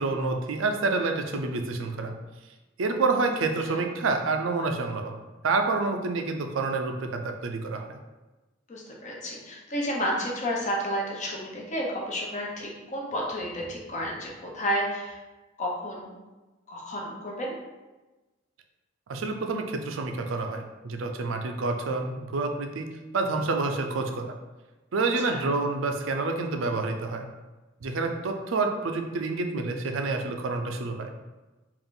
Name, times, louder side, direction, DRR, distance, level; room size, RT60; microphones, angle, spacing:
voice 1, 0.0-2.1 2.8-5.1 5.4-8.0 19.1-22.9 23.1-24.3 24.9-27.3 27.8-31.1, right 3 dB, 80° right, 5 dB, 0.5 m, -28 dB
voice 2, 8.7-15.2 15.6-16.2 16.7-17.6 25.3-25.4, equal, 40° left, -2 dB, 0.7 m, -31 dB
3.8 x 2.5 x 3.7 m, 1.1 s
head